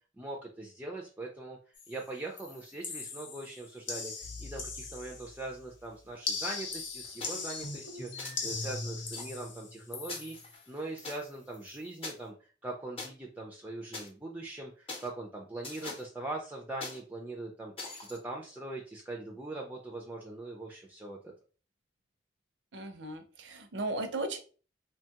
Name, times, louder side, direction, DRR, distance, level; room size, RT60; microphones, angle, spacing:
voice 1, 0.2-21.2, right 2 dB, 10° right, 0 dB, 0.4 m, -41 dB
sound 1, 1.7-2.0 2.4-5.5 6.2-10.6 11.0-11.3 11.5-11.8, left 5 dB, 90° left, 0.7 m, -40 dB
sound 2, 4.2-6.1 6.6-6.7 7.0-10.5, left 1 dB, 65° left, 0.8 m, -45 dB
sound 3, 7.2-7.5 8.2-8.3 9.1-9.2 10.1-11.2 12.0-12.1 13.0-13.1 13.9-14.1 14.9-15.1 15.6-16.1 16.8-17.0 17.8-18.2, left 3 dB, 30° left, 0.7 m, -42 dB
voice 2, 22.7-24.4, right 2 dB, 70° right, 7 dB, 0.5 m, -36 dB
3.1 x 2.2 x 2.8 m, 0.38 s
head